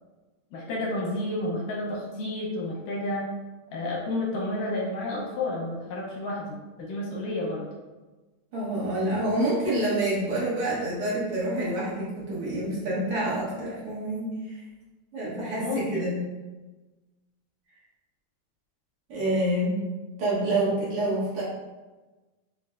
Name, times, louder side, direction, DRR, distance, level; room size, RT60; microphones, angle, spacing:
voice 1, 0.5-3.3 3.7-7.6 15.6-16.1, left 2 dB, 75° left, -4 dB, 2.3 m, -31 dB
voice 2, 8.5-14.6 15.1-16.2 19.1-19.8 20.2-21.4, right 1 dB, 60° right, -8 dB, 1.5 m, -27 dB
5.3 x 3.2 x 2.4 m, 1.2 s
omnidirectional pair, 4.0 m